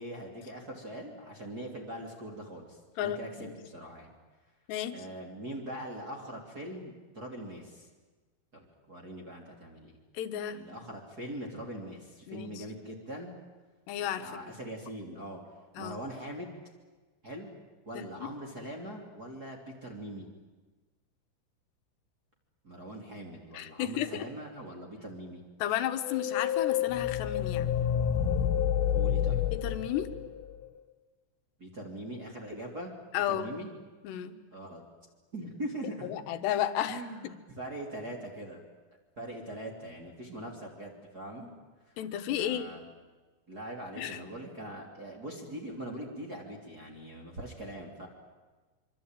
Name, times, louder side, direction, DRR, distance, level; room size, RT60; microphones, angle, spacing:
voice 1, 0.0-4.1 4.9-7.9 8.5-10.0 10.5-13.3 14.2-15.4 15.8-16.5 17.2-17.5 17.8-20.3 22.6-25.4 28.9-29.5 31.6-32.9 33.3-33.7 34.5-34.8 35.3-36.1 36.9-38.6 39.2-41.5 41.9-42.0 42.4-42.8 43.5-48.1, right 1 dB, 25° right, -1 dB, 2.8 m, -42 dB
voice 2, 3.0-3.5 4.7-5.0 10.1-10.6 12.3-12.6 13.9-14.4 15.8-16.0 18.0-18.1 23.5-24.2 25.6-27.7 29.5-30.1 33.1-33.5 34.0-34.4 36.0-37.0 42.0-42.7 44.0-44.2, left 11 dB, 70° left, 9 dB, 3.1 m, -33 dB
sound 1, 26.0-30.6, left 9 dB, 90° left, 3.9 m, -29 dB
26.0 x 25.0 x 9.1 m, 1.3 s
omnidirectional pair, 5.7 m